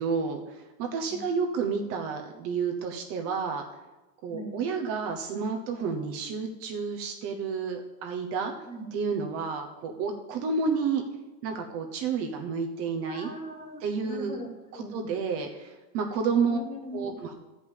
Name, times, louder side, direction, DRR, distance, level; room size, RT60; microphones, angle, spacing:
voice 1, 0.0-3.8 4.2-8.5 8.9-11.0 11.4-13.3 13.8-14.4 14.7-16.6 16.9-17.3, right 5 dB, 30° right, 3 dB, 0.9 m, -30 dB
voice 2, 4.3-4.6 8.7-9.0 13.1-14.9 16.3-17.1, equal, 10° left, 2 dB, 1.2 m, -40 dB
13.0 x 5.4 x 8.2 m, 1.1 s
supercardioid pair, 175°, 49 cm